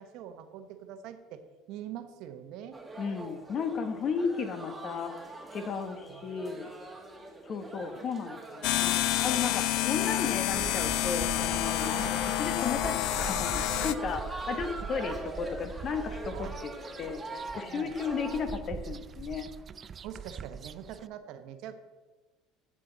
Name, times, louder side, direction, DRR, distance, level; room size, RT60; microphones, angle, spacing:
voice 1, 0.0-2.9 6.1-6.3 7.8-8.0 8.3-8.7 16.3-16.5 17.7-18.0 20.0-21.7, right 10 dB, 70° right, 8 dB, 1.0 m, -44 dB
sound 1, 2.7-18.5, right 2 dB, 10° right, 1.7 m, -42 dB
voice 2, 3.0-5.2 5.5-6.7 7.4-16.5 17.0-17.2 17.5-19.5, left 5 dB, 45° left, 8 dB, 1.2 m, -34 dB
sound 2, 8.6-13.9, left 15 dB, 70° left, 0.4 m, -29 dB
sound 3, 10.5-21.1, right 6 dB, 35° right, 0.3 m, -43 dB
12.5 x 7.6 x 3.9 m, 1.2 s
supercardioid pair, 110°, 0 cm